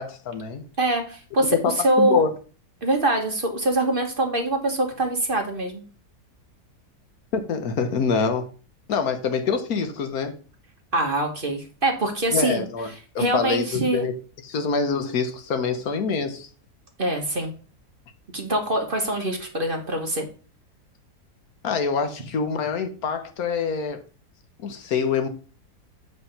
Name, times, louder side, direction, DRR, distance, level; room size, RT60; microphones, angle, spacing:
voice 1, 0.0-0.7 1.5-2.3 7.3-8.5 8.9-10.4 12.3-14.1 14.4-16.5 21.6-24.0 24.6-25.3, left 5 dB, 70° left, 1.2 m, -25 dB
voice 2, 0.8-2.2 2.8-5.8 10.9-12.6 13.2-14.1 17.0-17.5 18.3-20.3, right 1 dB, 35° right, 1.2 m, -24 dB
8.2 x 3.4 x 5.6 m
omnidirectional pair, 1.7 m